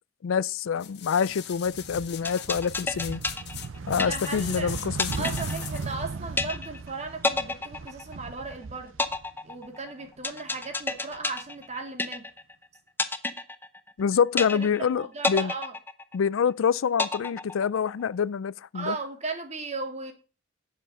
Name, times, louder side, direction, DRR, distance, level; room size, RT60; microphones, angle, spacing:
voice 1, 0.2-3.2 3.9-5.3 14.0-15.5 16.1-19.0, left 7 dB, 80° left, 0.4 m, -26 dB
sound 1, 0.8-6.0 6.5-6.6, left 11 dB, 60° left, 1.3 m, -40 dB
sound 2, 1.5-9.7 10.0-11.2, right 4 dB, 75° right, 0.6 m, -38 dB
Quantized trash bin rythm, 2.2-4.5 5.0-6.0 6.4-6.9 7.2-8.5 9.0-12.5 13.0-14.0 14.4-14.9 15.2-16.5 17.0-18.0, left 3 dB, 10° left, 0.8 m, -30 dB
voice 2, 4.0-4.7 5.2-8.9 9.4-12.2 14.4-15.7 18.7-20.1, right 3 dB, 35° right, 2.6 m, -36 dB
10.0 x 7.6 x 5.3 m
head